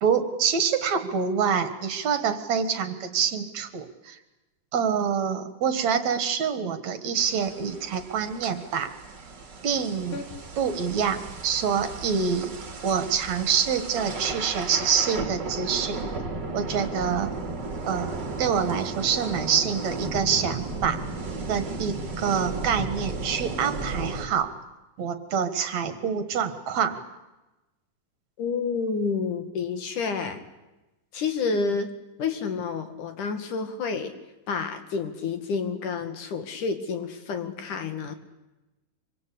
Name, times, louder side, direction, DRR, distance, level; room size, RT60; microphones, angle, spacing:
voice 1, 0.0-4.2 4.7-8.9 9.6-10.2 10.6-12.6 12.8-16.0 16.5-17.3 17.9-21.0 21.5-24.5 25.0-27.0, right 7 dB, 60° right, 10 dB, 2.8 m, -26 dB
sound 1, 7.2-24.3, right 3 dB, 35° right, 3.2 m, -35 dB
voice 2, 28.4-30.4 31.1-34.1 34.5-38.1, left 5 dB, 70° left, 8 dB, 3.6 m, -29 dB
25.5 x 24.5 x 8.6 m, 1.0 s
omnidirectional pair, 3.7 m